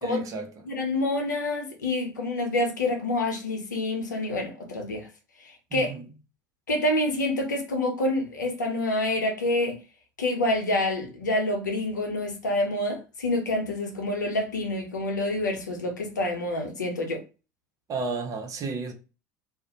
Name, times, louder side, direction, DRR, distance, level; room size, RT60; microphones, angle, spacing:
voice 1, 0.0-0.5 5.7-6.0 17.9-18.9, right 4 dB, 35° right, 0.6 m, -32 dB
voice 2, 0.6-5.1 5.4-5.9 6.7-9.8 10.2-17.2, left 1 dB, 85° left, 0.7 m, -27 dB
2.4 x 2.0 x 2.9 m
figure-of-eight pair, 70°, 10 cm